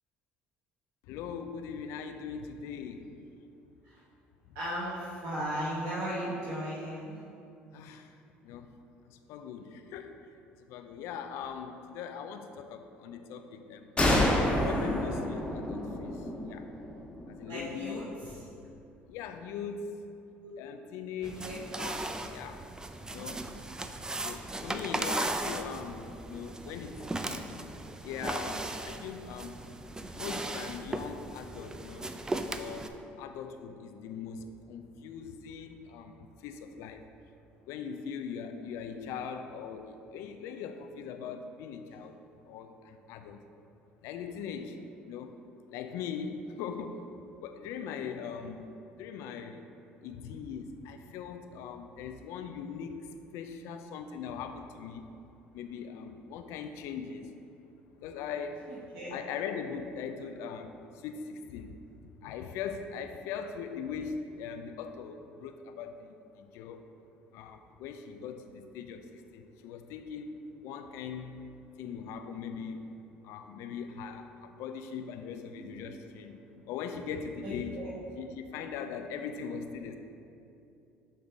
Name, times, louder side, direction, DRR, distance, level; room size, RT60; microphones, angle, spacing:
voice 1, 1.1-3.2 7.7-8.2 8.4-8.7 9.1-10.2 10.7-13.9 14.6-16.7 17.3-18.1 19.1-20.0 20.6-22.6 23.1-23.4 24.2-27.6 28.0-29.6 30.1-32.1 32.5-32.9 33.2-37.0 37.7-42.2 42.5-43.4 44.0-44.8 45.1-45.4 45.7-47.1 47.4-49.7 50.0-55.1 55.5-57.3 58.0-58.7 59.1-61.8 62.2-66.8 67.3-71.4 71.8-73.0 73.2-76.4 76.7-77.8 78.2-80.0, left 6 dB, 75° left, 7 dB, 0.4 m, -40 dB
voice 2, 4.5-7.2 17.5-18.4 20.4-20.5 21.4-21.7 58.9-59.2 77.4-77.9, equal, 75° right, -8 dB, 1.2 m, -36 dB
sound 1, 14.0-17.5, left 1 dB, 20° left, 1.4 m, -29 dB
sound 2, 21.2-32.9, right 2 dB, 15° right, 0.4 m, -37 dB
6.5 x 3.8 x 4.5 m, 2.7 s
supercardioid pair, 75°, 5 cm